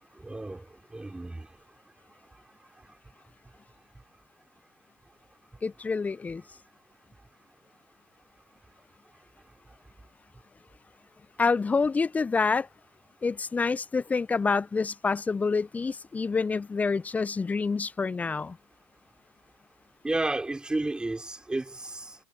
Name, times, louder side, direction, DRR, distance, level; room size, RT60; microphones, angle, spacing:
voice 1, 0.2-0.6 0.9-1.5 20.0-22.1, right 2 dB, 5° right, 5.1 m, -32 dB
voice 2, 5.6-6.4 11.4-12.7 13.2-18.6, left 4 dB, 10° left, 0.6 m, -27 dB
figure-of-eight pair, 95°, 12 cm